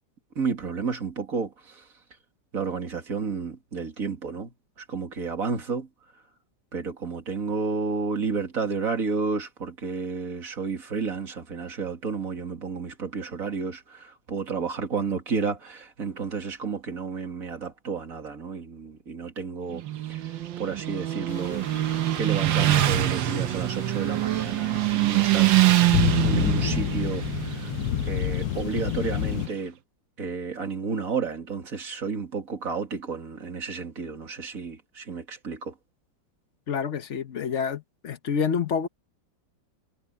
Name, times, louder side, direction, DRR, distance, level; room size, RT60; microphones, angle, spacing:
voice 1, 0.3-1.9 2.5-5.9 6.7-21.7 22.1-25.5 26.2-27.7 28.1-29.8 30.2-35.7, right 5 dB, 45° right, 2.9 m, -31 dB
Motorcycle, 19.7-29.5, right 14 dB, 75° right, 1.7 m, -25 dB
sound 1, 21.3-29.5, left 14 dB, 75° left, 1.0 m, -30 dB
voice 2, 36.7-38.9, left 6 dB, 45° left, 1.1 m, -28 dB
omnidirectional pair, 2.1 m